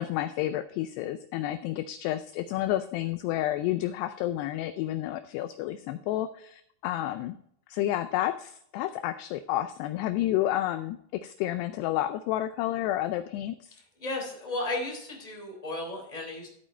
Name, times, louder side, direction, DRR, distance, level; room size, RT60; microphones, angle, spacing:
voice 1, 0.0-7.4 7.7-13.8, left 13 dB, 85° left, 11 dB, 2.4 m, -30 dB
voice 2, 14.0-16.5, left 2 dB, 10° left, 0 dB, 2.7 m, -34 dB
13.5 x 8.6 x 3.4 m, 0.69 s
omnidirectional pair, 5.2 m